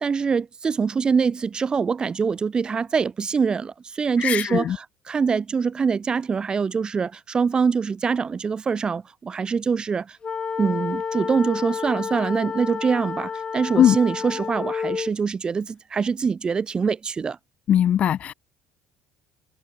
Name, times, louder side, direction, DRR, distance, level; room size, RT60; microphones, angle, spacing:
voice 1, 0.0-10.2 10.6-17.4, right 5 dB, 30° right, 1.1 m, -24 dB
voice 2, 4.2-4.8 13.8-14.0 17.7-18.3, left 10 dB, 50° left, 0.5 m, -19 dB
sound 1, 10.2-15.1, left 6 dB, 35° left, 1.1 m, -30 dB
supercardioid pair, 95°, 3 cm